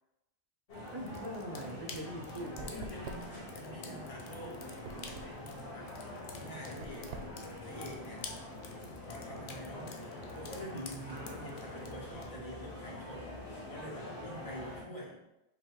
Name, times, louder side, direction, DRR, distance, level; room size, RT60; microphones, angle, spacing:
sound 1, 0.7-12.2, left 4 dB, 85° left, 0.9 m, -50 dB
sound 2, 0.7-14.8, left 1 dB, 65° left, 1.3 m, -45 dB
voice 1, 0.9-2.6 11.1-12.0, right 1 dB, 25° right, 0 dB, 0.7 m, -43 dB
sound 3, 1.0-8.5, right 4 dB, 80° right, 0.8 m, -49 dB
voice 2, 2.6-5.9 6.3-7.1 7.6-8.4 9.1-9.9 10.3-13.4 13.6-15.2, equal, 35° left, -4 dB, 1.1 m, -46 dB
5.3 x 2.3 x 3.8 m, 0.92 s
omnidirectional pair, 1.1 m